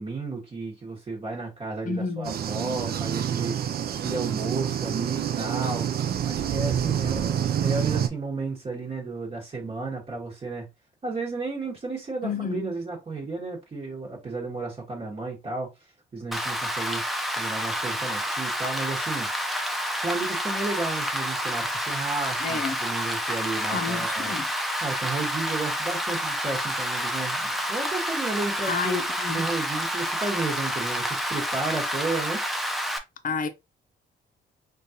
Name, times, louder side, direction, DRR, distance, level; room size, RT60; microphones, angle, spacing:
voice 1, 0.0-5.9 6.2-10.7 11.0-15.7 16.1-19.3 20.0-24.3 24.8-29.0 29.3-32.4, right 3 dB, 30° right, 1.3 m, -33 dB
voice 2, 1.8-2.3 12.2-12.7 22.4-22.8 23.7-24.5 28.7-29.4 33.2-33.5, left 5 dB, 45° left, 0.7 m, -30 dB
sound 1, 2.2-8.1, right 9 dB, 50° right, 0.5 m, -27 dB
Rain, 16.3-33.0, equal, ahead, 0.6 m, -29 dB
3.8 x 2.5 x 2.8 m
cardioid pair, 90°, 20 cm